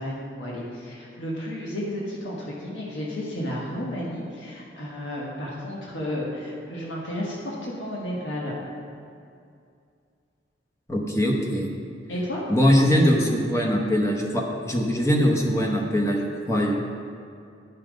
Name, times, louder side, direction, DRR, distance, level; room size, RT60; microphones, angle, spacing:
voice 1, 0.0-8.5 12.1-12.4, left 1 dB, 85° left, -4 dB, 1.4 m, -32 dB
voice 2, 10.9-11.7 12.5-16.7, equal, 15° left, -1 dB, 0.9 m, -22 dB
10.0 x 5.7 x 5.1 m, 2.4 s
head